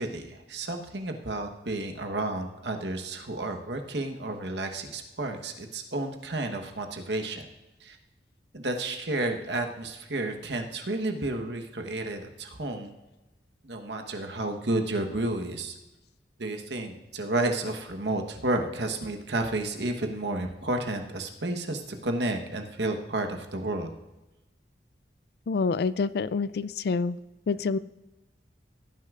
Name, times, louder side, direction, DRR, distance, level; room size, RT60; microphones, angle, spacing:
voice 1, 0.0-7.5 7.8-8.0 8.5-12.9 13.6-15.8 16.4-23.9, right 2 dB, 70° right, 4 dB, 1.2 m, -31 dB
voice 2, 25.5-27.2 27.5-27.8, left 4 dB, 60° left, 16 dB, 0.4 m, -27 dB
16.5 x 9.7 x 2.5 m, 1.1 s
head